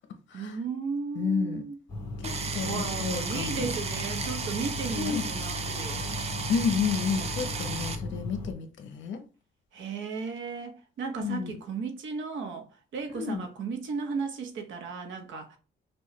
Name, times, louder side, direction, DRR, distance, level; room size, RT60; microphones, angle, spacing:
voice 1, 0.3-1.8 2.6-6.0 9.7-12.7 12.9-15.6, right 5 dB, 80° right, 0.9 m, -35 dB
voice 2, 1.2-1.6 2.2-3.7 4.9-5.3 6.5-9.2 11.2-11.6 13.1-13.4, left 6 dB, 75° left, 0.8 m, -31 dB
sound 1, 1.9-8.5, left 2 dB, 15° left, 2.1 m, -37 dB
sound 2, 2.2-7.9, right 5 dB, 35° right, 0.5 m, -34 dB
6.2 x 2.3 x 3.1 m
wide cardioid pair, 180°, 19 cm